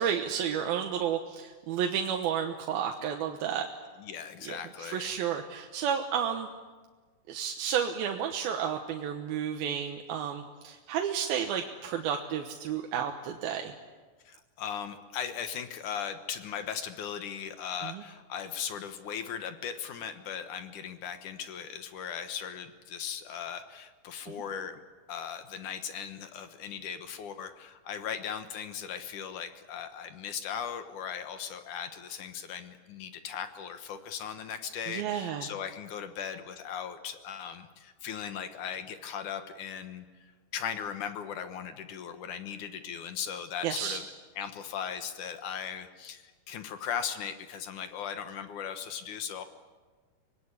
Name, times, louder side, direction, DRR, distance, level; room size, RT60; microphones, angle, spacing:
voice 1, 0.0-3.7 4.4-6.5 7.3-13.7 17.8-18.0 24.3-24.4 34.9-35.5 43.6-44.0, right 8 dB, 90° right, 3 dB, 3.1 m, -31 dB
voice 2, 4.0-5.2 14.3-24.8 25.1-49.4, left 8 dB, 65° left, 8 dB, 2.6 m, -38 dB
25.5 x 20.0 x 9.8 m, 1.4 s
omnidirectional pair, 4.1 m